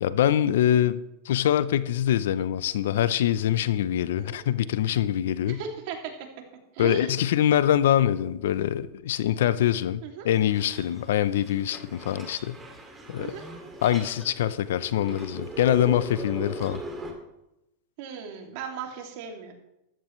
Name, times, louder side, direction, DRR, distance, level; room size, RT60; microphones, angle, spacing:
voice 1, 0.0-5.6 6.8-12.6 13.1-13.4 13.8-16.8, left 11 dB, 80° left, 16 dB, 0.6 m, -24 dB
voice 2, 5.5-6.0 6.7-7.1 10.0-10.3 13.2-13.5 18.0-19.5, right 7 dB, 60° right, 2 dB, 2.6 m, -37 dB
sound 1, 10.3-17.1, right 2 dB, 15° right, 2.4 m, -40 dB
13.5 x 13.5 x 3.2 m, 0.87 s
supercardioid pair, 125°, 0 cm